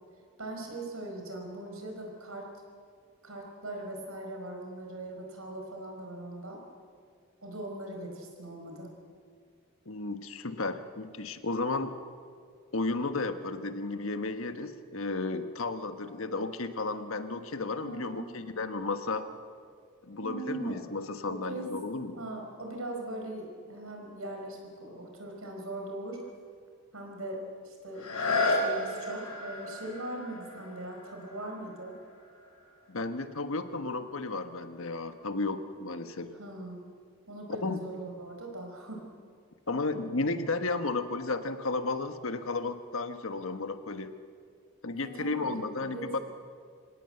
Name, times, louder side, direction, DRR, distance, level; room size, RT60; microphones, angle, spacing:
voice 1, 0.4-2.5 3.2-6.6 7.4-8.9 17.8-18.3 20.2-20.7 21.4-21.7 22.2-26.2 26.9-28.1 28.6-31.9 36.4-36.8 37.3-39.1 44.9-46.2, right 1 dB, 80° right, 2 dB, 5.2 m, -40 dB
voice 2, 9.8-11.9 12.7-19.3 20.0-22.2 32.9-36.4 37.6-37.8 39.7-44.1 44.8-46.2, left 3 dB, 70° left, 9 dB, 1.3 m, -33 dB
sound 1, 27.9-33.6 34.2-34.3, left 2 dB, 90° left, 5.2 m, -34 dB
25.5 x 18.0 x 7.9 m, 2.1 s
head